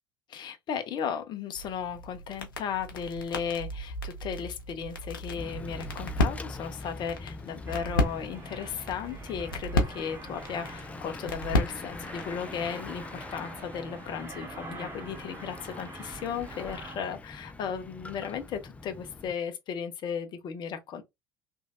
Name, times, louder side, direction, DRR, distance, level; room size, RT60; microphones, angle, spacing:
voice 1, 0.3-21.0, left 7 dB, 40° left, 0.7 m, -35 dB
sound 1, 1.5-12.4, left 2 dB, 80° left, 0.7 m, -34 dB
Bicycle / Mechanisms, 5.3-19.3, left 3 dB, 10° left, 0.3 m, -43 dB
Aircraft, 7.7-17.0, right 3 dB, 20° right, 1.2 m, -46 dB
3.1 x 2.6 x 2.4 m
figure-of-eight pair, 65°, 11 cm